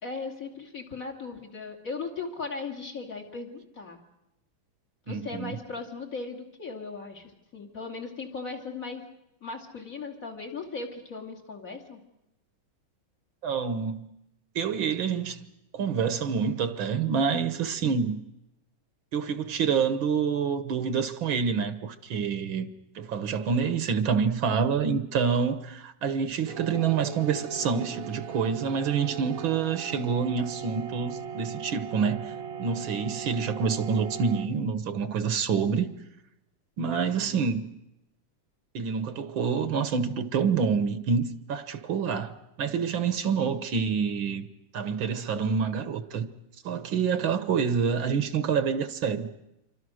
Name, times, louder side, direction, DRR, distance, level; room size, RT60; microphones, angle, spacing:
voice 1, 0.0-4.0 5.1-9.0 9.4-12.0 43.4-43.7, left 4 dB, 40° left, 3.2 m, -38 dB
voice 2, 5.1-5.6 13.4-14.1 14.6-15.5 15.7-18.2 19.1-22.7 23.0-35.9 36.8-37.6 38.7-44.5 44.7-46.3 46.6-49.3, right 6 dB, 70° right, 2.0 m, -27 dB
sound 1, 26.5-34.5, right 7 dB, 50° right, 1.3 m, -38 dB
27.5 x 24.5 x 6.4 m
omnidirectional pair, 2.2 m